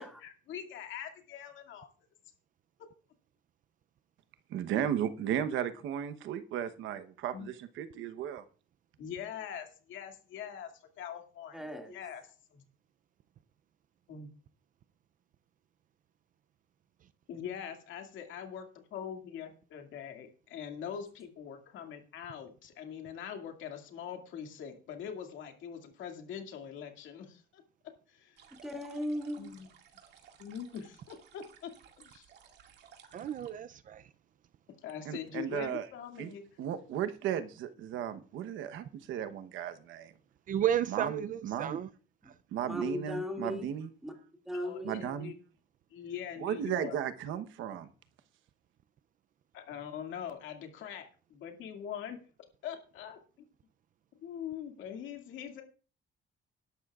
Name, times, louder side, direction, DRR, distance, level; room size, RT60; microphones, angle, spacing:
voice 1, 0.2-1.9 7.3-7.5 9.0-10.7 11.0-11.6 11.9-12.2 12.5-12.6 14.1-14.3 17.3-27.6 28.1-28.4 29.4-29.7 30.4-31.7 32.0-32.3 34.8-36.4 44.5-45.3 45.9-47.0 49.5-52.2 52.6-53.5 54.2-55.6, left 8 dB, 80° left, 2.3 m, -43 dB
voice 2, 4.5-8.4 35.1-35.8 36.2-36.3 36.6-40.1 40.9-41.8 42.5-43.9 44.8-45.3 46.4-47.9, right 9 dB, 90° right, 1.0 m, -35 dB
voice 3, 11.5-12.0 28.6-29.5 42.7-43.7 44.0-44.1 44.5-45.0, left 1 dB, ahead, 2.2 m, -37 dB
sound 1, 28.4-33.5, right 8 dB, 60° right, 2.1 m, -58 dB
voice 4, 33.1-34.0 40.5-41.9 42.3-42.4 42.7-42.8, right 10 dB, 45° right, 0.5 m, -32 dB
19.5 x 11.5 x 2.4 m
cardioid pair, 165°, 19 cm